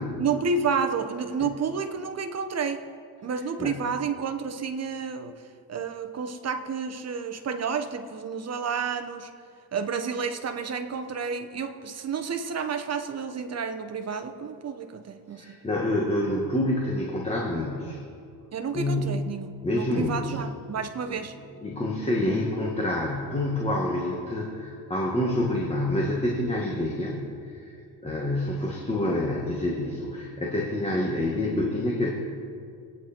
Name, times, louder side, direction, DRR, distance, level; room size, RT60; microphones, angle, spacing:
voice 1, 0.2-2.8 3.2-5.4 5.7-9.3 9.7-15.4 18.5-21.3, right 5 dB, 35° right, 8 dB, 1.0 m, -30 dB
voice 2, 15.3-18.0 18.7-19.2 19.6-20.4 21.1-21.2 21.6-27.7 28.0-32.1, left 1 dB, 15° left, -2 dB, 1.8 m, -27 dB
24.5 x 9.6 x 4.5 m, 2.4 s
cardioid pair, 130°, 42 cm